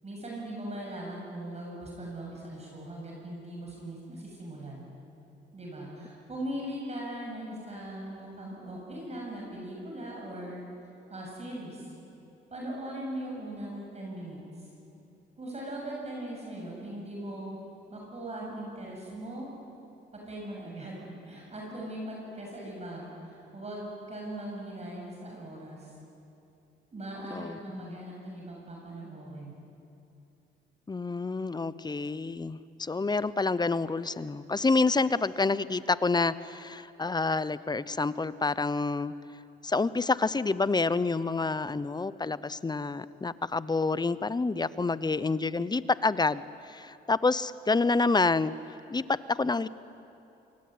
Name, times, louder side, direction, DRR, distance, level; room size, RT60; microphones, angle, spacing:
voice 1, 0.0-4.9 5.5-10.6 11.1-11.9 12.5-14.7 15.4-17.6 17.9-19.5 20.1-25.9 26.9-29.5, right 1 dB, 35° right, -2 dB, 7.8 m, -40 dB
voice 2, 27.3-28.0 30.9-39.1 39.6-48.5 48.9-49.7, left 3 dB, 20° left, 16 dB, 0.8 m, -28 dB
26.5 x 23.0 x 9.6 m, 2.8 s
cardioid pair, 90°, 20 cm